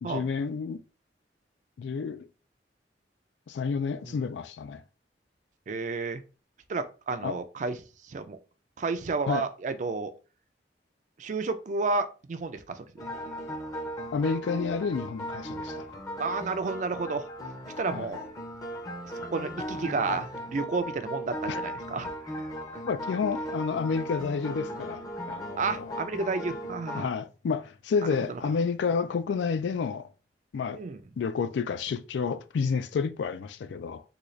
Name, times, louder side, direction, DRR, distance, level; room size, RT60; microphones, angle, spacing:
voice 1, 0.0-0.8 1.8-2.3 3.5-4.8 7.2-7.4 9.3-9.4 14.1-15.9 17.9-18.1 21.5-21.6 22.8-25.9 26.9-30.1 30.5-30.8 31.2-34.0, left 5 dB, 90° left, 0.3 m, -30 dB
voice 2, 5.7-6.2 6.7-7.8 8.0-8.4 8.8-10.1 11.2-12.9 16.2-17.3 17.8-18.2 19.1-22.5 25.6-27.1 28.3-28.4 30.7-31.0, right 4 dB, 45° right, 0.4 m, -31 dB
sound 1, 13.0-27.0, equal, 20° left, 0.6 m, -37 dB
3.8 x 2.4 x 3.1 m
head